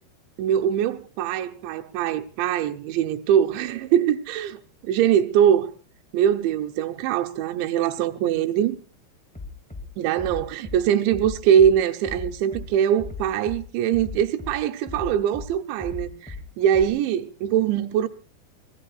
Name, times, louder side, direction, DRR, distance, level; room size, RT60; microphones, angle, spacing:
voice 1, 0.4-5.7 6.1-8.8 10.0-18.1, right 9 dB, 90° right, 3.3 m, -22 dB
Bass drum, 9.3-9.8 10.2-10.8 11.1-11.7 12.0-12.7 13.0-13.6 13.9-14.5 14.9-15.5 15.8-16.4 16.7-16.8, left 4 dB, 5° left, 0.6 m, -36 dB
25.5 x 19.5 x 2.5 m
omnidirectional pair, 5.1 m